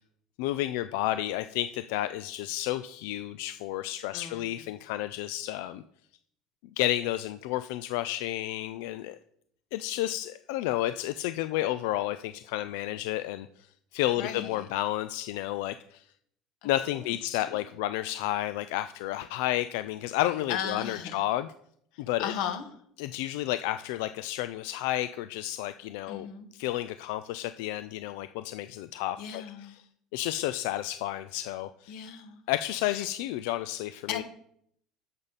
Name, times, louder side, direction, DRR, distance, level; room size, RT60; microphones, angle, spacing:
voice 1, 0.4-5.8 6.8-9.2 9.7-13.5 13.9-16.0 16.6-21.5 22.0-22.3 23.0-26.3 26.5-29.8 30.1-31.9 32.5-34.2, left 14 dB, 85° left, 0.4 m, -31 dB
voice 2, 4.1-4.6 14.2-14.5 17.3-17.4 20.5-21.2 22.2-22.6 26.1-26.5 29.2-29.7 31.9-32.4 32.9-33.0 34.1-34.2, left 8 dB, 65° left, 1.4 m, -35 dB
10.0 x 7.2 x 4.1 m
cardioid pair, 155°, 0 cm